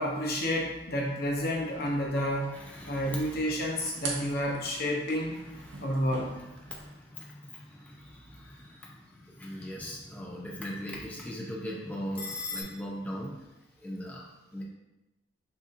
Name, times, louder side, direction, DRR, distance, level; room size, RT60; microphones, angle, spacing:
voice 1, 0.0-2.5 2.9-5.4 5.8-6.3, equal, 55° left, -1 dB, 0.8 m, -30 dB
sound 1, 1.3-6.9, right 3 dB, 70° right, 0.8 m, -44 dB
voice 2, 2.5-3.4 3.8-4.0 5.5-5.9 6.3-13.4 13.8-14.6, equal, 10° left, -4 dB, 0.6 m, -40 dB
sound 2, 6.2-12.6, left 4 dB, 30° left, 1.0 m, -49 dB
6.4 x 2.8 x 2.5 m, 1.0 s
head